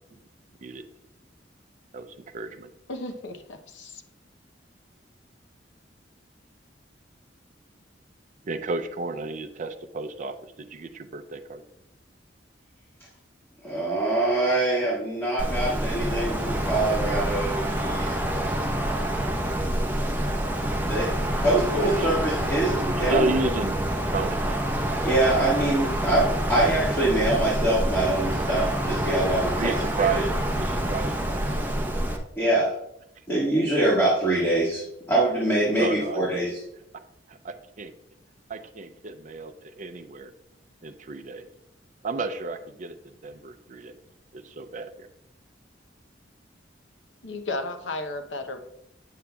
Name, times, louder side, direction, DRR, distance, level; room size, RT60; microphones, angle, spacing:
voice 1, 1.9-2.7 8.4-11.6 20.9-21.6 21.8-22.1 22.9-23.8 24.1-24.6 28.3-28.4 29.1-29.2 29.6-31.7 35.8-36.5 37.3-37.9 38.5-40.3 40.8-41.5 42.0-44.0 44.3-45.1, right 3 dB, 45° right, 7 dB, 0.5 m, -32 dB
voice 2, 2.9-4.0 47.2-48.6, left 2 dB, 75° left, 7 dB, 0.8 m, -34 dB
voice 3, 13.6-18.2 20.9-21.1 21.4-23.3 25.0-29.7 30.0-30.2 32.4-32.7 33.3-34.8 35.1-36.6, right 1 dB, 15° left, -7 dB, 1.7 m, -24 dB
Wind, 15.4-32.2, right 1 dB, 10° right, 0.7 m, -27 dB
8.3 x 6.8 x 2.3 m, 0.82 s
head